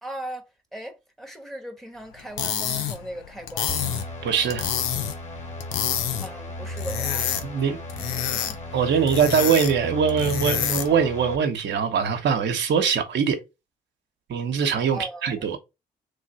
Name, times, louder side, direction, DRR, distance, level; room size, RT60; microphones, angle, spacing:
voice 1, 0.0-3.7 6.2-7.3 8.2-8.6 8.8-9.1 14.9-15.6, right 1 dB, ahead, 1.2 m, -38 dB
sound 1, 2.2-11.1, left 9 dB, 85° left, 0.6 m, -29 dB
sound 2, 3.7-11.4, left 1 dB, 35° left, 2.2 m, -36 dB
voice 2, 4.2-4.7 7.4-7.8 8.7-13.4 14.3-15.6, right 6 dB, 65° right, 1.0 m, -22 dB
3.4 x 3.2 x 4.1 m
supercardioid pair, 55°, 20 cm